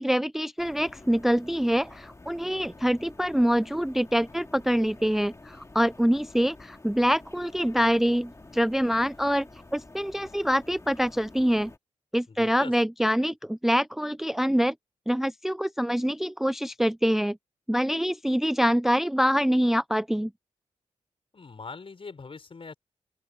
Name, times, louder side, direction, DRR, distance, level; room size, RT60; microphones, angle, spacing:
voice 1, 0.0-9.5 9.7-11.7 12.1-14.7 15.1-17.4 17.7-20.3, equal, 5° right, 0.4 m, -25 dB
sound 1, 0.6-11.8, left 2 dB, 25° left, 2.5 m, -49 dB
voice 2, 12.3-12.7 21.3-22.7, left 4 dB, 45° left, 6.1 m, -42 dB
open air
cardioid pair, 75°, 12 cm